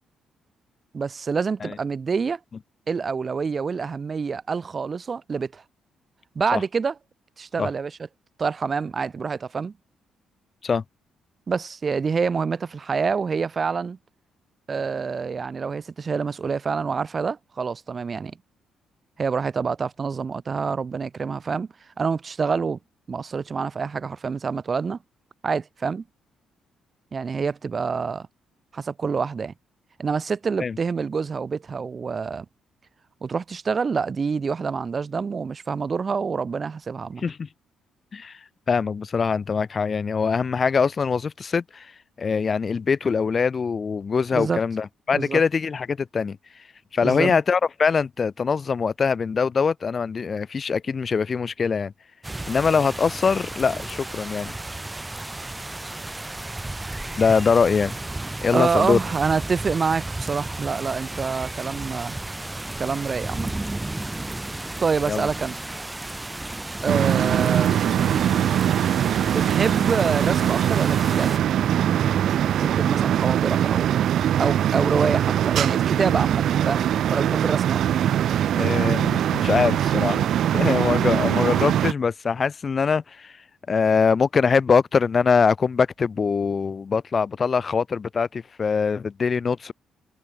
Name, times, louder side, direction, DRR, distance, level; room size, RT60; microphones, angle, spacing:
voice 1, 0.9-2.4 2.9-5.6 6.4-6.9 7.4-8.0 8.4-9.7 11.5-14.0 14.7-18.4 19.2-21.7 22.0-22.8 23.1-25.0 25.4-26.0 27.1-28.3 28.7-29.5 30.0-32.5 33.2-37.2 44.3-44.6 45.1-45.4 47.0-47.4 58.5-62.2 62.8-63.5 64.8-65.6 66.8-68.5 69.3-71.4 72.4-73.9 74.4-77.8, right 5 dB, 35° right, 2.1 m, -27 dB
voice 2, 37.2-37.5 38.1-38.4 38.7-41.9 42.2-46.4 46.9-51.9 52.5-54.5 57.2-57.9 58.4-59.0 65.1-65.3 78.6-80.2 80.5-83.3 83.7-89.7, left 5 dB, 35° left, 1.8 m, -23 dB
sound 1, 52.2-71.4, right 2 dB, 10° right, 3.6 m, -33 dB
sound 2, 66.9-81.9, right 10 dB, 70° right, 2.2 m, -22 dB
cardioid pair, 115°, 0 cm